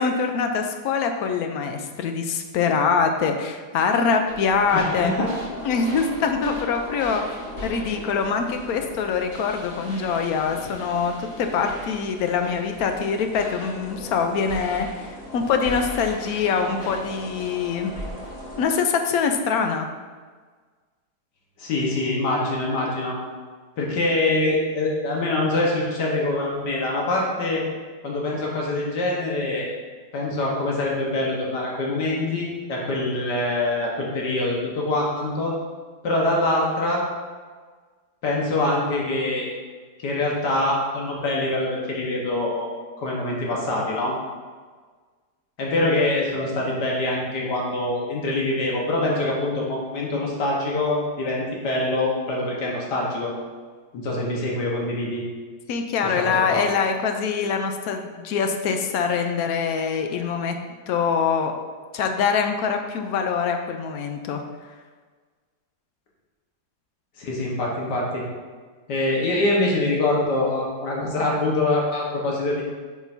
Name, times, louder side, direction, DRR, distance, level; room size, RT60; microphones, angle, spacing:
voice 1, 0.0-5.1 5.6-7.2 7.6-15.1 15.3-17.9 18.6-19.9 55.7-60.6 60.9-61.5 61.9-64.4, left 5 dB, 70° left, 5 dB, 1.1 m, -24 dB
sound 1, 4.3-18.6, left 1 dB, 40° left, 1.3 m, -38 dB
voice 2, 4.7-5.4 21.6-23.2 23.8-27.6 28.0-29.7 30.1-35.5 36.0-37.0 38.2-39.5 40.0-44.1 45.6-53.3 53.9-55.2 56.0-56.6 67.2-68.2 68.9-72.6, left 2 dB, 90° left, -3 dB, 1.8 m, -24 dB
8.7 x 5.2 x 2.7 m, 1.5 s
omnidirectional pair, 1.8 m